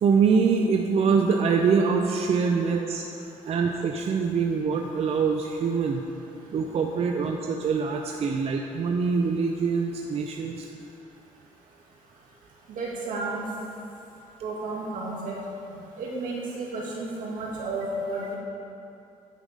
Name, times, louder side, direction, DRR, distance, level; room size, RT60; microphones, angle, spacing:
voice 1, 0.0-3.0 3.4-6.0 6.4-10.7, right 5 dB, 50° right, 2 dB, 0.5 m, -24 dB
voice 2, 12.7-13.4 14.4-15.4 16.0-18.4, right 2 dB, 80° right, -4 dB, 2.0 m, -32 dB
10.0 x 5.1 x 5.2 m, 2.7 s
cardioid pair, 100°, 14 cm